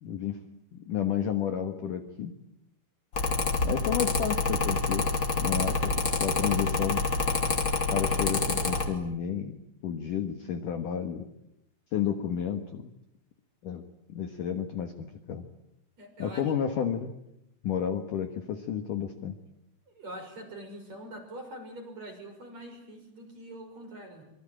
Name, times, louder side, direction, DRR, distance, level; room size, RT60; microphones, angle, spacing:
voice 1, 0.0-0.4 0.9-2.3 3.6-5.1 5.4-7.0 7.9-9.6 9.8-11.3 11.9-12.9 13.6-13.8 14.1-15.4 16.2-17.1 17.6-19.3, left 8 dB, 60° left, 7 dB, 2.3 m, -31 dB
Mechanical fan, 3.1-8.9, left 3 dB, 30° left, 2.9 m, -27 dB
voice 2, 16.0-16.4 19.9-24.2, right 1 dB, 35° right, 4 dB, 7.0 m, -44 dB
26.5 x 24.5 x 8.9 m, 0.82 s
omnidirectional pair, 5.7 m